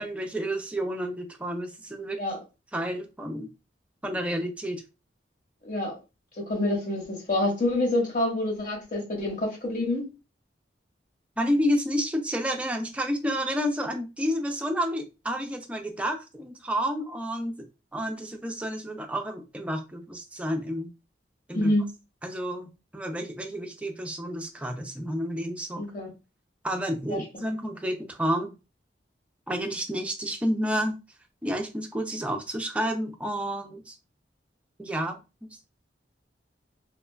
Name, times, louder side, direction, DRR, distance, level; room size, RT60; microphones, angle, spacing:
voice 1, 0.0-2.2 2.7-3.5 4.0-4.8 11.4-17.6 17.9-20.9 21.5-21.7 22.2-25.8 26.6-28.5 29.5-30.9 31.4-34.0 34.8-35.2, equal, 5° right, 3 dB, 0.4 m, -30 dB
voice 2, 5.6-5.9 6.4-10.0 21.5-21.9 25.8-26.1 27.1-27.5, left 1 dB, 50° left, -2 dB, 1.2 m, -27 dB
2.9 x 2.3 x 2.2 m, 0.28 s
head